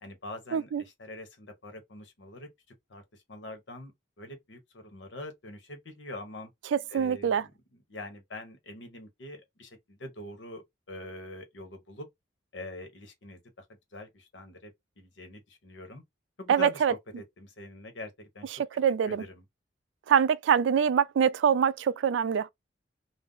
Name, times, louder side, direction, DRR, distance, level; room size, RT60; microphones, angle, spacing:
voice 1, 0.0-2.5 2.9-3.9 4.2-6.5 6.9-7.5 7.9-12.1 12.5-13.6 13.9-16.0 16.4-18.5 19.0-19.4, left 2 dB, 85° left, 0.9 m, -44 dB
voice 2, 0.5-0.8 6.7-7.4 16.5-16.9 18.5-19.2 20.1-22.5, right 7 dB, 80° right, 0.3 m, -24 dB
2.5 x 2.0 x 3.6 m
head